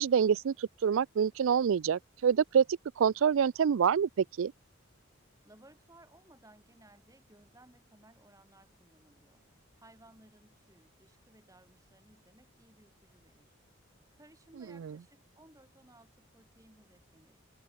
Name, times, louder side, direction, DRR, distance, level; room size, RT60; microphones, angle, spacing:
voice 1, 0.0-2.6 3.0-4.5 14.8-14.9, right 7 dB, 70° right, 0.4 m, -26 dB
voice 2, 5.4-9.5 9.8-13.5 14.1-17.4, right 1 dB, 15° right, 5.8 m, -60 dB
head